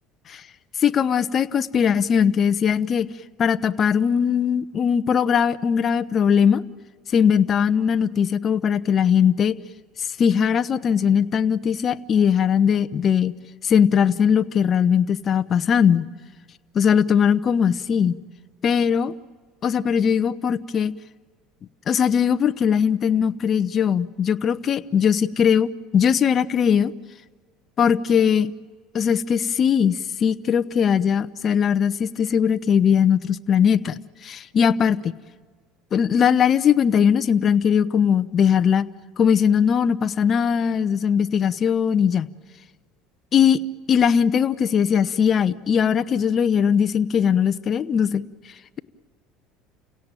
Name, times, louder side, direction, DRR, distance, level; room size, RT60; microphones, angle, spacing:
voice 1, 0.8-3.1 3.4-6.6 7.1-9.6 10.2-13.3 13.6-16.1 16.7-18.2 18.6-19.1 19.6-20.9 21.9-26.9 27.8-28.5 28.9-35.1 35.9-38.8 39.2-42.3 43.3-43.6 43.9-48.2, left 7 dB, 35° left, 12 dB, 0.8 m, -20 dB
29.5 x 17.0 x 9.0 m, 1.5 s
supercardioid pair, 120°, 0 cm